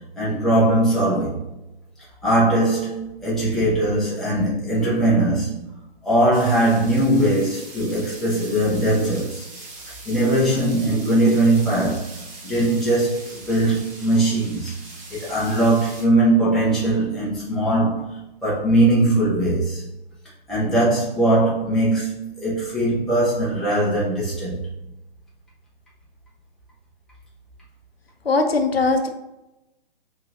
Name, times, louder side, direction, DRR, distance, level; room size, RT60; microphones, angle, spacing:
voice 1, 0.2-1.4 2.2-5.6 6.0-9.5 10.1-12.1 12.4-14.7 15.1-19.8 20.5-24.7, right 1 dB, ahead, 0.7 m, -20 dB
sound 1, 6.3-16.0, right 2 dB, 30° right, 1.2 m, -41 dB
voice 2, 28.2-29.1, left 3 dB, 80° left, 0.7 m, -20 dB
5.7 x 2.6 x 3.0 m
figure-of-eight pair, 130°, 30 cm